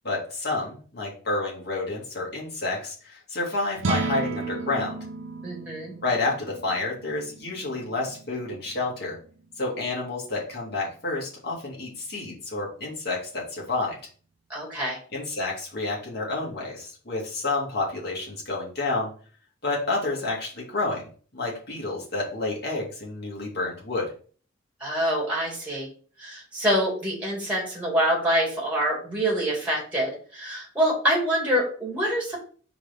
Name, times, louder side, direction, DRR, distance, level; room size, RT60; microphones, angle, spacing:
voice 1, 0.0-5.0 6.0-9.2 9.6-14.0 15.1-19.1 19.6-21.1 21.3-24.1, left 2 dB, 55° left, -3 dB, 2.4 m, -29 dB
sound 1, 3.7-10.1, right 4 dB, 85° right, 0.6 m, -35 dB
voice 2, 5.4-5.9 14.5-15.0 24.8-25.9 26.2-32.4, equal, 5° right, -2 dB, 2.4 m, -26 dB
4.6 x 3.9 x 5.2 m, 0.42 s
head